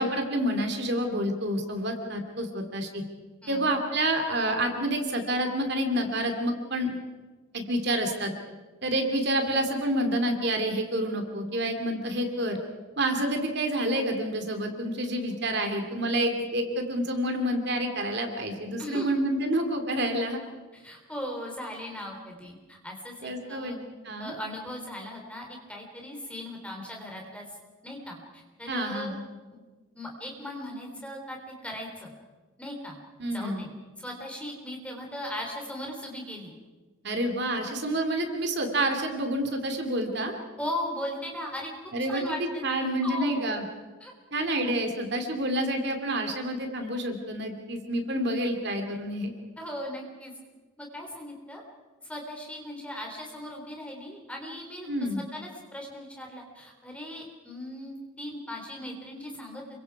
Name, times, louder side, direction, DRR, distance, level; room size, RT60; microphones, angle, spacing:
voice 1, 0.0-3.0 3.5-7.0 7.5-8.3 8.8-12.6 13.0-20.4 23.2-24.3 28.7-29.2 33.2-33.6 37.0-40.3 41.9-42.2 42.6-43.6 44.3-49.3 54.9-55.2, right 1 dB, 50° right, 5 dB, 2.7 m, -28 dB
voice 2, 3.4-3.7 18.8-19.2 20.7-23.8 24.2-27.4 27.8-29.1 29.5-29.6 29.9-32.1 32.6-33.0 33.3-33.7 34.0-36.5 40.6-41.7 42.0-43.4 44.0-44.1 49.6-50.3 50.8-51.6 52.0-54.9 55.2-59.6, left 1 dB, 5° left, 0 dB, 3.8 m, -38 dB
28.0 x 24.0 x 4.9 m, 1.3 s
head